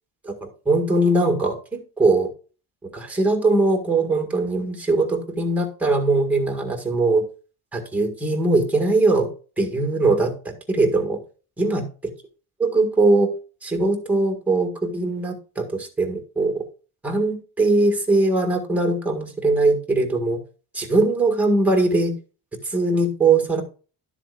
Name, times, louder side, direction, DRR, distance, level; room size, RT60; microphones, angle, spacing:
voice 1, 0.3-2.3 2.9-7.2 7.7-9.3 9.6-11.2 11.6-11.8 12.6-13.3 13.6-16.6 17.0-20.4 20.7-22.1 22.7-23.6, right 2 dB, 5° right, 4 dB, 1.7 m, -21 dB
12.0 x 7.5 x 2.4 m, 0.36 s
cardioid pair, 170°, 37 cm